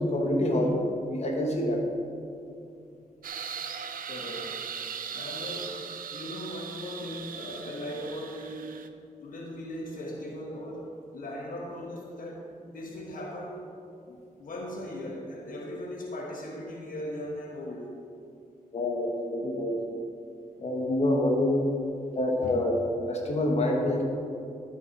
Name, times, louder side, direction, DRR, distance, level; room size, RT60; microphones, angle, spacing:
voice 1, 0.0-1.8 18.7-19.8 20.6-21.6 22.2-22.7 23.1-24.0, left 1 dB, 45° left, 0 dB, 1.4 m, -26 dB
sound 1, 3.2-8.9, right 7 dB, 70° right, 0.6 m, -39 dB
voice 2, 4.0-4.6 5.1-8.8 9.2-13.7 14.1-18.0 22.0-22.1 22.4-22.6, left 1 dB, 70° left, -1 dB, 1.2 m, -38 dB
12.5 x 5.4 x 4.6 m, 2.6 s
wide cardioid pair, 130°, 15 cm